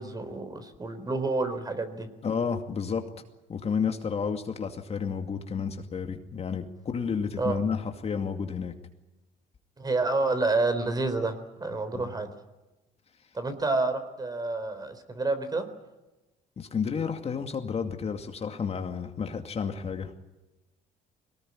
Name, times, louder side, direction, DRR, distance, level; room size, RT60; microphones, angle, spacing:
voice 1, 0.0-2.1 7.4-7.5 9.8-12.3 13.3-15.7, right 3 dB, 20° right, 9 dB, 3.9 m, -29 dB
voice 2, 2.2-3.1 3.5-8.7 11.9-12.1 16.6-20.1, left 6 dB, 35° left, 5 dB, 2.4 m, -31 dB
22.0 x 19.0 x 9.8 m, 1.0 s
cardioid pair, 110°, 17 cm